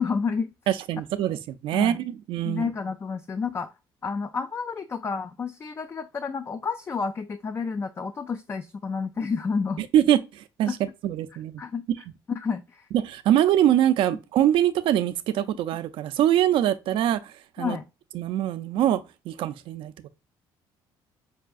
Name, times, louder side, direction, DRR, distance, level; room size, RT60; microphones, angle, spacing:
voice 1, 0.0-0.5 1.7-2.0 2.4-3.7 4.0-9.9 10.7-10.8 11.6-11.8 12.3-12.9 17.6-17.9, left 5 dB, 30° left, 0.3 m, -30 dB
voice 2, 0.7-2.7 9.8-10.7 11.0-11.6 12.9-17.8 18.1-19.0 19.3-20.1, right 11 dB, 70° right, 0.4 m, -23 dB
5.4 x 2.3 x 2.4 m
cardioid pair, 95°, 9 cm